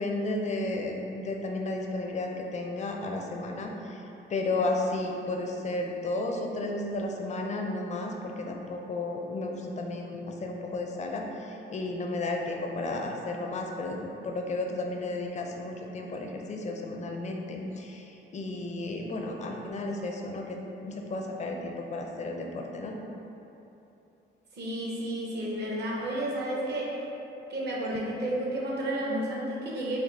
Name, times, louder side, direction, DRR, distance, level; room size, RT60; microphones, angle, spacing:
voice 1, 0.0-4.0 4.3-22.9 27.9-28.0, left 2 dB, 35° left, 1 dB, 0.5 m, -33 dB
voice 2, 24.5-27.0 27.5-30.0, right 1 dB, 60° right, -4 dB, 0.9 m, -31 dB
3.9 x 2.4 x 3.3 m, 2.9 s
cardioid pair, 90°, 20 cm